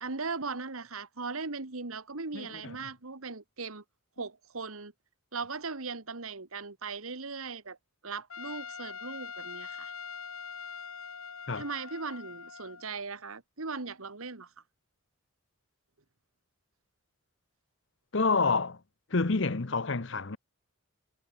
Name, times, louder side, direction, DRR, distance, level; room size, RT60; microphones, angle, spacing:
voice 1, 0.0-3.8 4.2-4.9 5.3-7.8 8.0-9.9 11.5-14.5, right 4 dB, 85° right, 1.8 m, -38 dB
voice 2, 2.3-2.8 11.5-11.6 18.1-18.8 19.1-20.4, left 4 dB, 60° left, 1.0 m, -28 dB
Trumpet, 8.3-12.9, left 6 dB, 90° left, 3.6 m, -43 dB
head